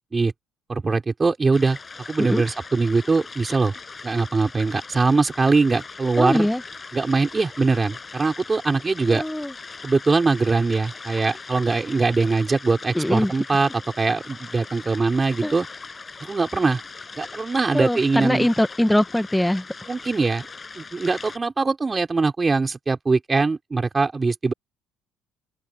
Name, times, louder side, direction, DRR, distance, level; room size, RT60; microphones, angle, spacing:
voice 1, 0.7-1.8 2.1-3.7 4.0-6.5 6.9-9.2 9.8-13.7 14.0-15.7 16.2-16.8 17.2-18.5 19.9-20.5 20.8-24.5, right 4 dB, 25° right, 6.2 m, -22 dB
sound 1, 1.5-21.4, left 4 dB, 25° left, 7.1 m, -40 dB
voice 2, 6.2-6.6 9.1-9.5 12.9-13.3 15.4-15.5 17.7-19.6, left 1 dB, 5° left, 1.6 m, -22 dB
open air
supercardioid pair, 85°, 0 cm